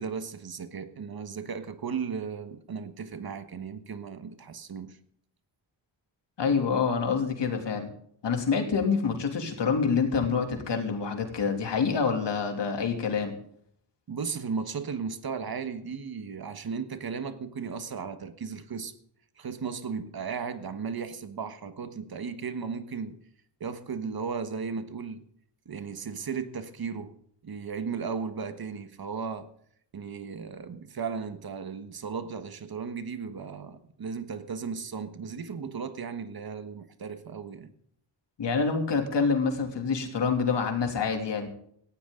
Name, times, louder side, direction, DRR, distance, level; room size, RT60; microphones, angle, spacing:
voice 1, 0.0-5.0 14.1-18.9 19.4-23.2 23.6-25.2 25.6-27.1 27.4-29.5 29.9-37.7, right 6 dB, 55° right, 1.5 m, -35 dB
voice 2, 6.4-7.9 8.2-13.3 38.4-41.5, left 5 dB, 80° left, 3.0 m, -27 dB
18.5 x 14.5 x 3.9 m
wide cardioid pair, 125°, 42 cm